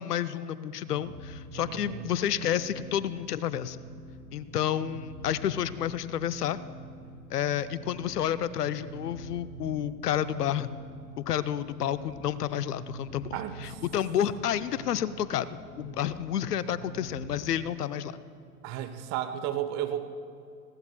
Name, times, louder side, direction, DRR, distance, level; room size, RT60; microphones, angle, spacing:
voice 1, 0.0-3.8 4.3-6.6 7.3-10.7 11.2-13.3 13.6-18.1, left 10 dB, 85° left, 15 dB, 0.6 m, -30 dB
sound 1, 0.7-17.7, right 2 dB, 75° right, 1.8 m, -46 dB
voice 2, 1.7-2.1 13.3-13.8 18.6-20.0, right 11 dB, 35° right, 9 dB, 0.9 m, -33 dB
19.5 x 16.0 x 2.2 m, 2.5 s
hypercardioid pair, 100°, 46 cm